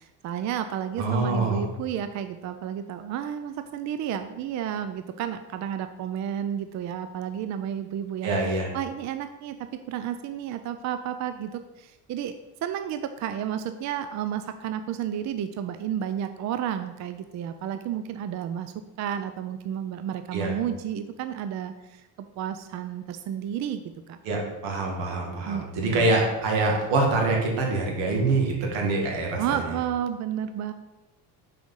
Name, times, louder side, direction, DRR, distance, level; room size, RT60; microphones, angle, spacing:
voice 1, 0.0-8.3 8.7-12.3 12.6-22.0 22.4-24.2 25.4-26.1 29.4-30.7, right 9 dB, 45° right, 10 dB, 0.4 m, -31 dB
voice 2, 1.0-1.6 8.2-8.7 20.3-20.5 24.2-29.6, right 2 dB, 80° right, 0 dB, 2.1 m, -25 dB
6.1 x 5.0 x 5.5 m, 1.0 s
cardioid pair, 125°, 42 cm